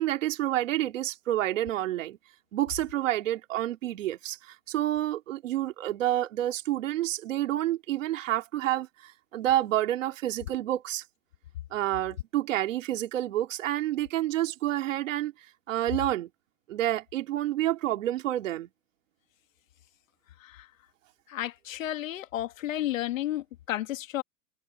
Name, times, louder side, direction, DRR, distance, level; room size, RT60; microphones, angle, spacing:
voice 1, 0.0-2.2 2.5-11.0 11.7-15.3 15.7-16.3 16.7-18.7, right 13 dB, 50° right, 2.5 m, -29 dB
voice 2, 21.3-24.2, left 13 dB, 50° left, 2.0 m, -32 dB
hypercardioid pair, 170°, 50 cm